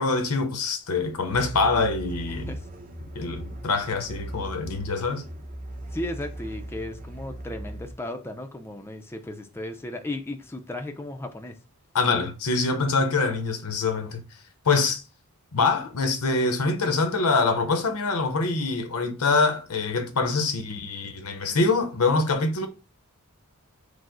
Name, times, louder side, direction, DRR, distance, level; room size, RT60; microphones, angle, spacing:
voice 1, 0.0-2.5 3.1-5.2 11.9-14.2 14.6-15.0 15.5-22.7, left 3 dB, 85° left, 0.8 m, -24 dB
sound 1, 1.3-7.9, right 1 dB, 40° right, 0.7 m, -38 dB
voice 2, 2.3-2.7 5.9-11.6, left 1 dB, 10° left, 0.4 m, -35 dB
4.9 x 2.0 x 3.7 m
head